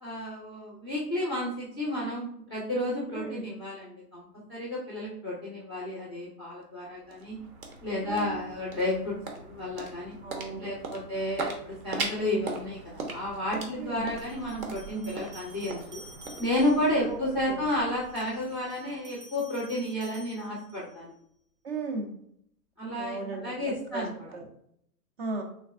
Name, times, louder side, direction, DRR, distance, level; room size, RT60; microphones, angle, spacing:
voice 1, 0.0-7.4 7.8-10.2 10.6-16.0 16.4-21.1 22.8-24.1, left 1 dB, 20° left, -5 dB, 0.3 m, -32 dB
voice 2, 3.1-3.5 8.0-8.4 10.2-10.7 13.8-14.1 17.1-17.2 17.5-17.6 21.6-22.1 23.0-23.5 23.9-24.1 24.3-24.4 25.2-25.4, right 3 dB, 40° right, 4 dB, 0.6 m, -35 dB
sound 1, 6.6-19.0, right 3 dB, 60° right, 0.9 m, -40 dB
sound 2, 14.2-17.0 17.9-21.0, right 1 dB, 75° right, 1.3 m, -51 dB
3.3 x 3.2 x 2.4 m, 0.69 s
hypercardioid pair, 150°, 47 cm